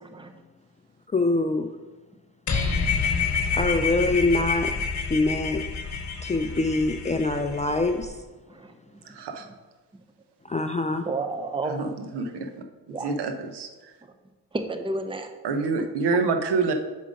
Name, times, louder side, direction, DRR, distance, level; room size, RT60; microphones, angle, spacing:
voice 1, 0.0-0.3 8.5-8.7 11.0-11.7 12.9-13.1 14.5-15.3, right 2 dB, 15° right, 7 dB, 0.7 m, -31 dB
voice 2, 1.1-1.7 3.5-4.7 5.1-5.6 6.2-8.1 10.5-11.1, left 2 dB, 20° left, 6 dB, 0.3 m, -24 dB
sound 1, 2.5-8.1, left 5 dB, 45° left, 0.9 m, -28 dB
voice 3, 9.0-9.5 11.6-14.0 15.4-16.7, right 4 dB, 75° right, 6 dB, 0.9 m, -28 dB
5.7 x 5.0 x 5.1 m, 1.2 s
cardioid pair, 80°, 41 cm